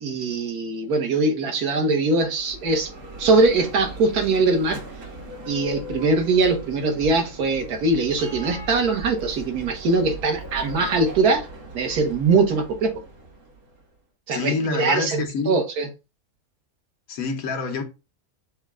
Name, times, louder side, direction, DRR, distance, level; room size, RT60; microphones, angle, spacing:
voice 1, 0.0-2.9 3.2-4.8 5.5-11.5 11.7-13.0 14.3-15.9, right 3 dB, 90° right, 1.5 m, -22 dB
Bell, 2.0-13.9, right 2 dB, 70° right, 1.8 m, -39 dB
voice 2, 14.3-15.6 17.1-17.8, left 4 dB, 70° left, 1.4 m, -27 dB
6.4 x 2.2 x 3.6 m
omnidirectional pair, 1.6 m